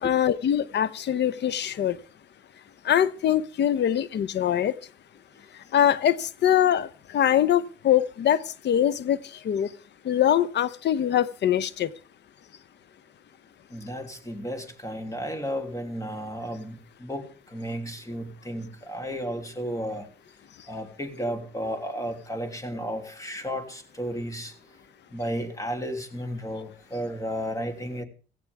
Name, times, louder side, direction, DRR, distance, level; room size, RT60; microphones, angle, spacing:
voice 1, 0.0-2.0 2.8-4.7 5.7-9.2 9.4-9.7 10.0-11.9, left 10 dB, 60° left, 0.8 m, -23 dB
voice 2, 13.7-20.1 20.7-24.6 25.1-28.0, equal, 15° left, 3.0 m, -33 dB
16.0 x 15.0 x 3.5 m
cardioid pair, 90°, 20 cm